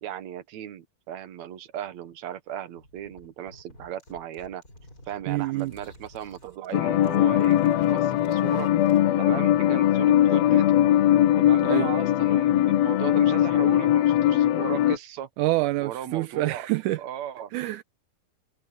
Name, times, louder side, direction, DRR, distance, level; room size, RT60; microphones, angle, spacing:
voice 1, 0.0-4.6 5.1-8.7 9.2-10.8 11.4-15.3 15.8-16.7 17.0-17.5, right 11 dB, 60° right, 2.4 m, -36 dB
sound 1, 2.7-9.2, left 1 dB, 25° left, 7.2 m, -51 dB
voice 2, 5.3-5.7 11.6-11.9 15.4-17.0 17.5-17.8, right 17 dB, 80° right, 2.0 m, -26 dB
sound 2, 6.7-15.0, left 12 dB, 85° left, 1.4 m, -20 dB
omnidirectional pair, 3.9 m